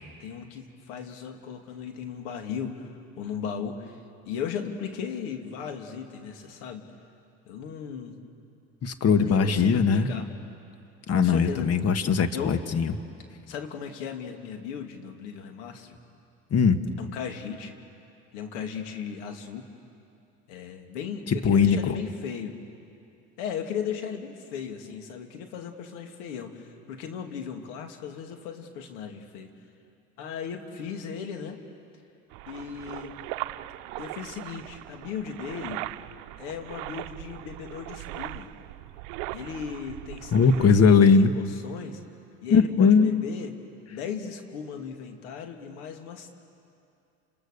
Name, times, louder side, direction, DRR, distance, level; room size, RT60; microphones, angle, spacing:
voice 1, 0.2-6.8 7.5-8.2 9.0-10.3 11.1-11.7 12.3-12.6 13.5-16.0 17.0-17.7 18.3-19.7 20.5-22.6 23.4-29.5 30.2-31.6 32.5-33.2 34.0-35.8 36.4-38.5 39.3-42.0 42.4-43.5 43.9-46.3, left 7 dB, 75° left, 4 dB, 2.8 m, -36 dB
voice 2, 8.8-10.1 11.1-12.9 16.5-16.8 21.3-22.0 40.3-41.3 42.5-43.1, left 5 dB, 45° left, 10 dB, 1.7 m, -20 dB
sound 1, 32.3-40.7, right 17 dB, 65° right, 0.8 m, -39 dB
30.0 x 27.0 x 6.8 m, 2.6 s
hypercardioid pair, 75°, 36 cm